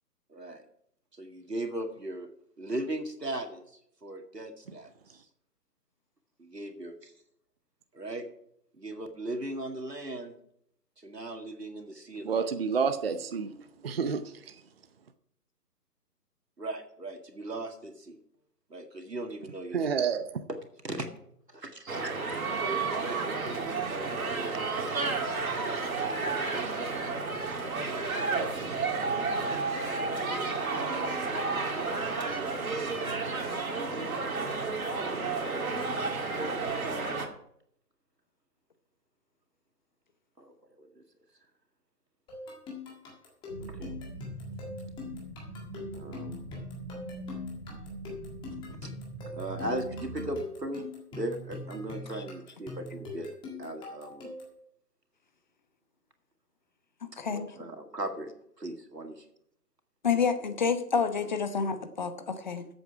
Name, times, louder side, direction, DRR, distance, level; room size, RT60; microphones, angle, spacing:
voice 1, 0.3-0.6 1.1-2.3 2.6-3.7 4.0-5.2 6.4-7.1 7.9-8.3 8.7-10.3 11.0-12.6 16.6-18.2 18.7-19.9 20.8-21.1 21.5-22.4 22.7-23.2 23.8-25.0 35.1-37.1 40.4-41.0 43.6-44.0 45.9-46.5 48.7-48.9 49.3-53.3 53.6-54.3 57.3-59.3, right 1 dB, 85° right, 2.1 m, -38 dB
voice 2, 12.2-14.6 19.7-20.3, right 6 dB, 40° right, 0.7 m, -30 dB
sound 1, 21.9-37.3, right 4 dB, 60° right, 2.3 m, -31 dB
sound 2, 42.3-54.6, left 3 dB, 10° left, 1.7 m, -43 dB
sound 3, 43.5-50.4, right 1 dB, 15° right, 1.0 m, -42 dB
voice 3, 57.2-57.5 60.0-62.7, left 5 dB, 30° left, 0.8 m, -29 dB
14.0 x 8.1 x 4.8 m
figure-of-eight pair, 135°, 47 cm